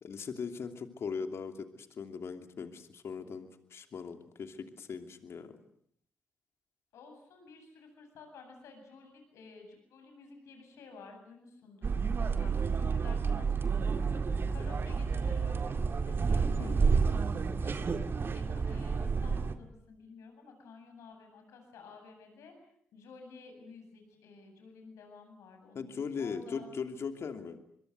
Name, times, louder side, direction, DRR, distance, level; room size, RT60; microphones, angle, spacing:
voice 1, 0.0-5.6 16.4-16.9 25.7-27.6, left 5 dB, 60° left, 7 dB, 2.9 m, -39 dB
voice 2, 6.9-14.2 14.5-22.5 22.9-26.7, left 4 dB, 75° left, 5 dB, 8.0 m, -52 dB
sound 1, 11.8-19.5, right 5 dB, 45° right, 2.0 m, -30 dB
26.0 x 22.5 x 8.0 m, 0.67 s
hypercardioid pair, 45°, 5 cm